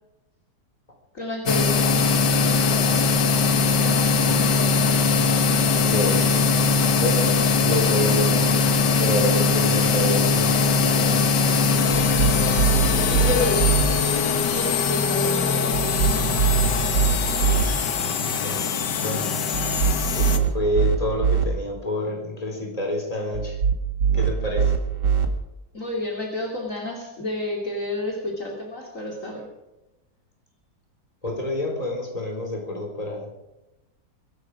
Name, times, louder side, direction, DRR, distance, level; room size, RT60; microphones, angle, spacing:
voice 1, 1.1-2.5 13.1-16.9 25.7-29.5, left 2 dB, 50° left, -1 dB, 3.1 m, -31 dB
sound 1, 1.5-20.4, left 5 dB, 85° left, 1.9 m, -21 dB
voice 2, 4.1-4.5 5.9-6.5 7.0-7.3 7.6-8.7 9.0-11.4 18.3-18.6 19.0-19.3 20.1-23.6 24.1-24.7 31.2-33.3, left 1 dB, 20° left, 0 dB, 4.2 m, -28 dB
sound 2, 11.9-13.8 15.7-17.7 19.5-21.5 23.3-25.3, right 7 dB, 85° right, 2.4 m, -23 dB
23.0 x 11.5 x 5.0 m, 0.96 s
omnidirectional pair, 1.8 m